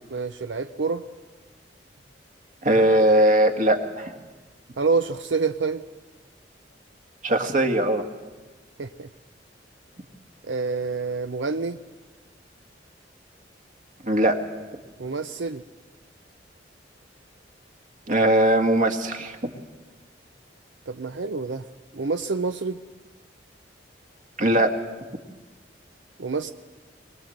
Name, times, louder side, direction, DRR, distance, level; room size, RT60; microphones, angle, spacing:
voice 1, 0.1-1.0 4.8-5.8 8.8-9.1 10.5-11.8 15.0-15.6 20.9-21.6 21.9-22.8 26.2-26.5, right 4 dB, 85° right, 9 dB, 0.7 m, -27 dB
voice 2, 2.6-4.1 7.2-8.0 14.1-14.4 18.1-19.5 24.4-24.7, right 1 dB, 45° right, 6 dB, 1.8 m, -20 dB
23.0 x 20.0 x 7.9 m, 1.3 s
head